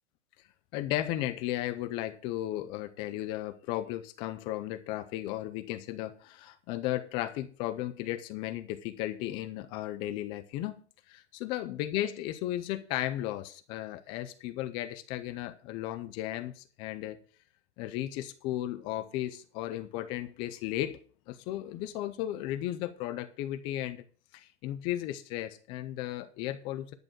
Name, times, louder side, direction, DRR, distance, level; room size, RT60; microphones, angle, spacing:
voice 1, 0.7-10.8 11.1-17.2 17.8-21.0 21.3-24.0 24.3-26.9, left 14 dB, 15° left, 0.4 m, -35 dB
10.5 x 6.7 x 6.1 m
hypercardioid pair, 155°, 35 cm